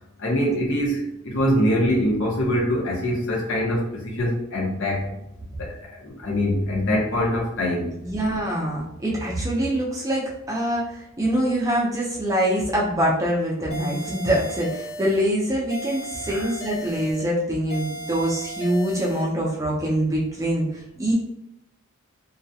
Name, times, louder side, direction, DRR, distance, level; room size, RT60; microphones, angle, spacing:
voice 1, 0.2-5.2 5.6-7.9 16.3-16.5, equal, 55° left, -2 dB, 0.7 m, -24 dB
voice 2, 8.0-21.1, right 1 dB, 15° right, -5 dB, 0.5 m, -24 dB
sound 1, 13.7-15.3 15.7-17.3 17.7-19.3, right 1 dB, 75° left, 1.0 m, -35 dB
2.3 x 2.1 x 2.6 m, 0.86 s
head